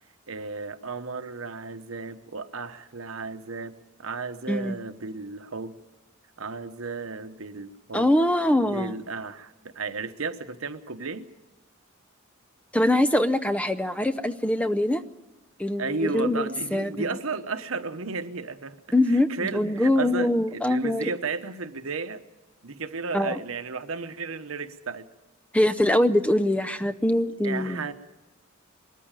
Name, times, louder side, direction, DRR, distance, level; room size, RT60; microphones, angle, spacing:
voice 1, 0.3-3.7 4.0-5.8 6.4-8.1 8.6-11.3 15.8-18.8 19.1-22.2 22.6-25.1 27.4-27.9, right 4 dB, 80° right, 9 dB, 1.1 m, -33 dB
voice 2, 4.5-4.8 7.9-8.9 12.7-15.0 15.6-17.0 18.9-21.1 23.1-23.4 25.5-27.8, left 1 dB, 5° left, 11 dB, 0.6 m, -23 dB
21.0 x 14.0 x 9.0 m, 1.0 s
head